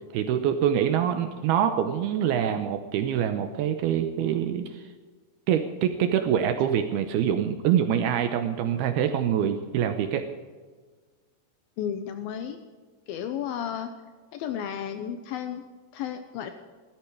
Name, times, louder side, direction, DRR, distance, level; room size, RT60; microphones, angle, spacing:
voice 1, 0.1-4.8 5.5-10.3, right 9 dB, 80° right, 6 dB, 2.3 m, -25 dB
voice 2, 11.8-12.6 13.1-13.9 14.3-15.6 15.9-16.5, left 9 dB, 90° left, 8 dB, 2.1 m, -33 dB
17.0 x 13.5 x 4.8 m, 1.5 s
omnidirectional pair, 5.4 m